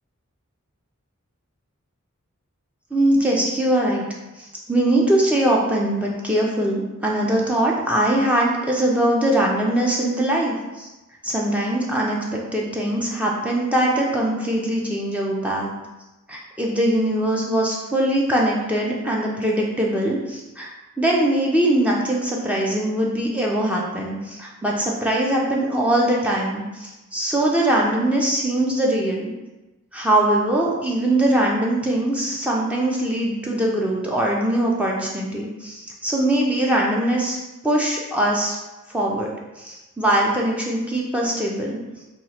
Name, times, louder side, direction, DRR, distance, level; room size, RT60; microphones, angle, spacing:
voice 1, 2.9-4.0 4.4-10.9 11.2-15.7 16.3-20.7 21.0-29.3 29.9-37.4 37.6-38.6 38.9-39.3 39.6-41.8, right 1 dB, 5° right, -3 dB, 0.4 m, -22 dB
3.0 x 2.3 x 4.1 m, 1.1 s
head